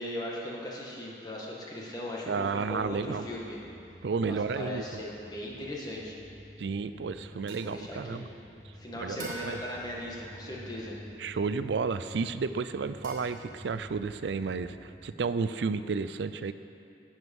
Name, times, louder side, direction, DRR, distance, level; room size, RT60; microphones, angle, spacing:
voice 1, 0.0-3.6 4.3-6.2 7.3-8.2 8.7-10.9, left 1 dB, 25° left, -4 dB, 1.7 m, -38 dB
voice 2, 2.3-3.3 4.0-5.0 6.6-8.3 9.0-9.6 11.2-16.5, right 5 dB, 85° right, 12 dB, 0.4 m, -32 dB
sound 1, 2.5-14.9, equal, 30° right, 1.8 m, -50 dB
sound 2, 7.5-8.7 9.2-11.0 13.0-14.1, right 3 dB, 50° right, 2.7 m, -46 dB
13.5 x 8.0 x 5.4 m, 2.6 s
head